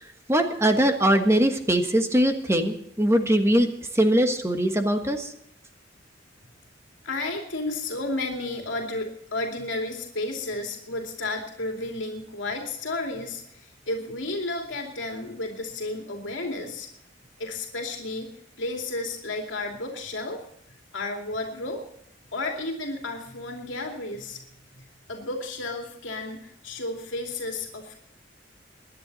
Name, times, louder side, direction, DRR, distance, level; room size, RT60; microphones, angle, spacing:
voice 1, 0.3-3.7 3.9-5.3, right 1 dB, 15° right, 6 dB, 1.4 m, -21 dB
voice 2, 7.0-16.9 17.4-20.4 20.9-21.8 22.3-24.4 24.7-28.0, left 2 dB, 75° left, 2 dB, 2.7 m, -32 dB
22.5 x 10.5 x 4.1 m, 0.73 s
head